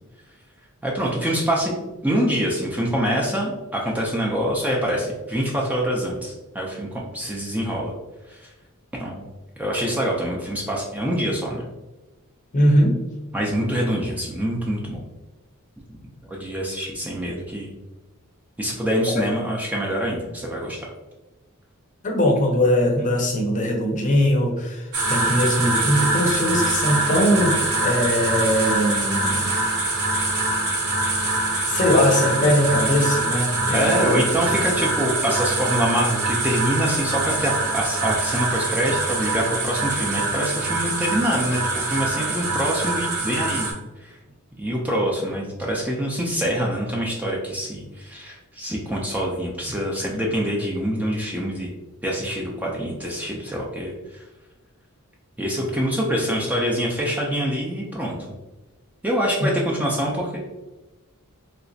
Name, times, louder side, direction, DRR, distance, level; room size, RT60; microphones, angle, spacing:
voice 1, 0.8-1.8 2.0-7.9 8.3-8.5 9.0-9.3 9.6-11.6 13.3-15.0 16.3-17.7 18.6-20.8 33.7-43.7 44.0-44.2 44.6-51.7 52.0-54.2 55.4-58.2 59.0-60.4, equal, 5° right, -3 dB, 0.4 m, -25 dB
voice 2, 12.5-13.0 22.0-29.5 31.7-34.2 34.5-34.6, equal, 35° left, 1 dB, 0.6 m, -21 dB
sound 1, 24.9-43.7, right 2 dB, 75° right, 0.9 m, -24 dB
3.2 x 2.9 x 2.6 m, 1.1 s
head